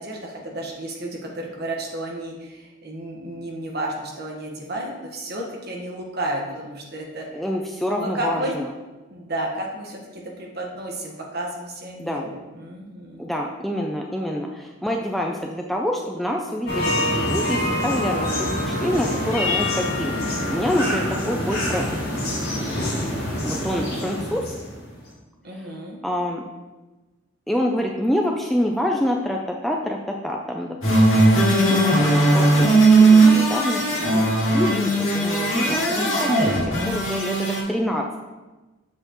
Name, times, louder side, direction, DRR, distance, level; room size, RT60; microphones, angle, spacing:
voice 1, 0.0-7.4 8.0-8.5 9.1-13.3 24.0-24.1 25.4-26.0 36.0-36.6, right 1 dB, 50° right, 0 dB, 1.3 m, -32 dB
voice 2, 7.3-8.7 12.0-12.2 13.2-21.9 23.4-24.5 25.5-25.7 26.0-26.4 27.5-36.5 36.9-38.1, equal, ahead, 0 dB, 0.4 m, -27 dB
sound 1, 16.7-25.0, left 1 dB, 50° left, 2.2 m, -25 dB
sound 2, 30.8-37.6, right 2 dB, 75° left, 2.1 m, -18 dB
7.7 x 6.7 x 3.0 m, 1.2 s
head